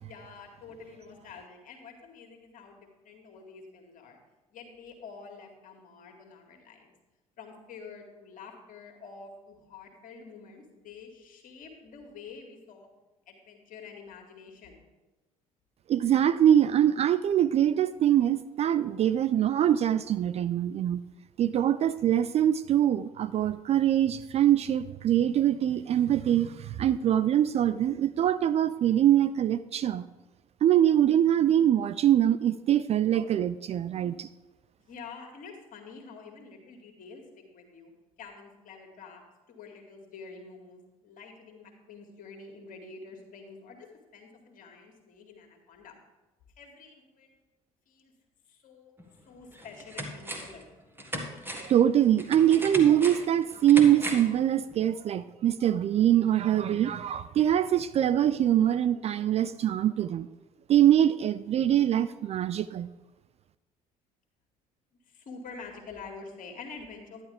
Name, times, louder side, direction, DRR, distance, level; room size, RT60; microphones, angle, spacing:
voice 1, 0.0-4.2 4.5-6.9 7.4-12.9 13.3-14.8 34.8-37.9 38.2-39.2 39.5-46.0 46.6-47.4 47.9-48.1 48.5-48.9 49.3-50.7 65.0-67.2, left 4 dB, 45° left, 3 dB, 2.0 m, -47 dB
voice 2, 15.9-21.0 21.4-30.1 30.6-34.3 51.5-60.3 60.7-62.9, right 11 dB, 35° right, 14 dB, 0.4 m, -23 dB
sound 1, 49.0-49.1 49.5-50.6 51.0-54.4 54.7-54.8, equal, 10° right, 1.7 m, -37 dB
11.5 x 10.5 x 3.4 m, 1.1 s
figure-of-eight pair, 55°, 19 cm